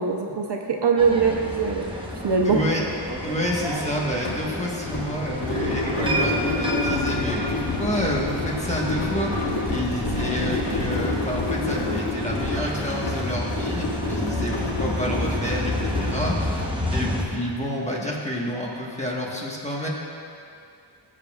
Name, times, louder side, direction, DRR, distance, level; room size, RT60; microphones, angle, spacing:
voice 1, 0.0-1.9 2.2-2.6, right 5 dB, 55° right, 2 dB, 0.8 m, -22 dB
sound 1, 1.0-17.2, equal, 10° right, 0.9 m, -30 dB
sound 2, 1.6-1.7 2.0-16.7, left 3 dB, 60° left, 1.2 m, -29 dB
voice 2, 2.4-2.8 3.2-16.6 16.8-19.9, equal, 15° left, -4 dB, 1.3 m, -29 dB
17.0 x 7.4 x 2.4 m, 2.4 s
wide cardioid pair, 140°, 48 cm